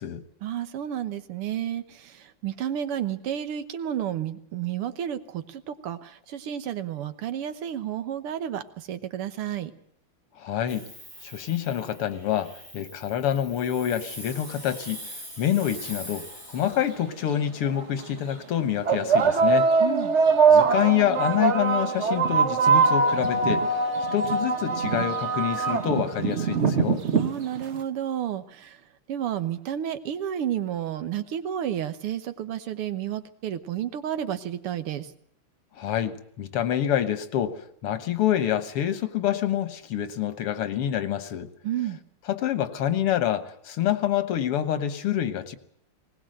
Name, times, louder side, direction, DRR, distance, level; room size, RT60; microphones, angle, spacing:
voice 1, 0.4-9.7 19.8-20.1 27.2-28.8 29.1-35.1 41.6-42.0, right 10 dB, 85° right, 11 dB, 2.0 m, -31 dB
voice 2, 10.4-10.9 11.2-15.0 15.4-19.7 20.5-23.6 24.1-27.0 35.8-41.5 42.3-45.6, left 10 dB, 85° left, 11 dB, 2.2 m, -27 dB
Hiss, 10.7-17.0, equal, 20° right, 8.4 m, -43 dB
sound 1, 16.8-16.9 17.8-18.0 18.9-27.8, right 5 dB, 45° right, 1.0 m, -22 dB
20.0 x 19.0 x 7.8 m, 0.67 s
omnidirectional pair, 2.4 m